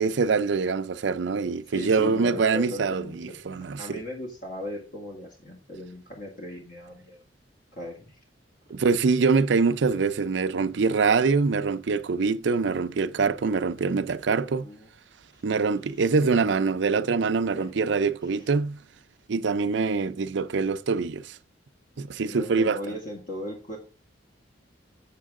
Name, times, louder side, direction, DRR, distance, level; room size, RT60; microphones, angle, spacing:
voice 1, 0.0-3.8 8.7-14.7 15.4-18.8 19.3-21.4 22.0-22.8, right 4 dB, 70° right, 0.5 m, -24 dB
voice 2, 1.7-3.4 3.8-7.2 7.7-8.2 14.5-14.9 15.3-15.4 17.5-17.7 18.2-18.5 21.9-23.8, left 1 dB, 50° left, 2.0 m, -38 dB
7.4 x 7.2 x 3.6 m
head